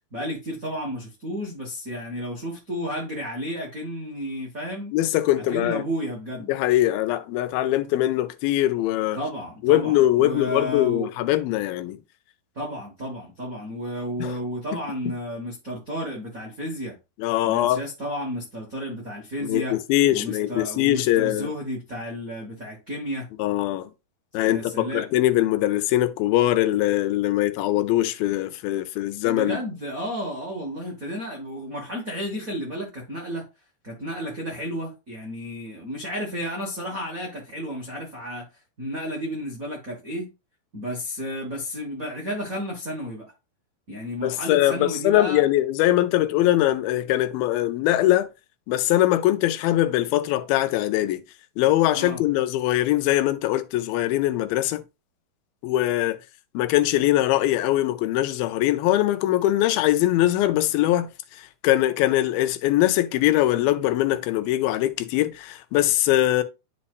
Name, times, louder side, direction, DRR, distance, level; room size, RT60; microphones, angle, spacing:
voice 1, 0.1-4.9 5.4-6.5 9.1-11.1 12.5-17.0 17.4-19.8 20.1-23.3 24.4-25.1 29.2-33.4 33.8-38.4 38.8-40.3 40.7-43.3 43.9-45.4 51.9-52.2, equal, 85° right, 0.7 m, -32 dB
voice 2, 4.9-5.8 6.5-9.2 9.6-12.0 14.2-14.4 17.2-17.8 19.4-21.5 23.4-23.9 24.3-29.6 44.2-48.3 48.7-51.2 51.6-54.8 55.6-56.2 56.5-66.4, left 14 dB, 85° left, 2.5 m, -22 dB
10.5 x 4.2 x 2.5 m
omnidirectional pair, 4.1 m